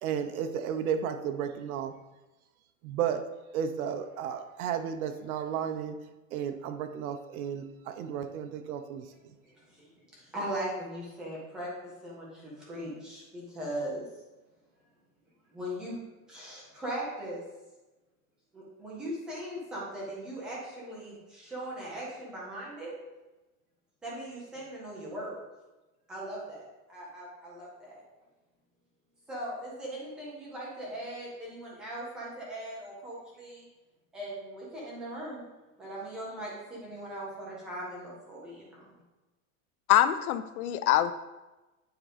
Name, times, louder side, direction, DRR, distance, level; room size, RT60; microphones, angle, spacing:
voice 1, 0.0-1.9 2.8-3.2 3.5-5.9 6.3-9.1, right 8 dB, 75° right, 7 dB, 0.8 m, -33 dB
voice 2, 9.4-14.0 15.5-15.9 16.3-17.4 18.5-22.9 24.0-25.4 26.1-28.0 29.3-33.6 34.1-35.4 35.8-38.9, right 1 dB, ahead, -6 dB, 0.3 m, -39 dB
voice 3, 39.9-41.1, left 12 dB, 85° left, 13 dB, 0.7 m, -24 dB
9.0 x 3.7 x 5.0 m, 1.1 s
supercardioid pair, 170°, 43 cm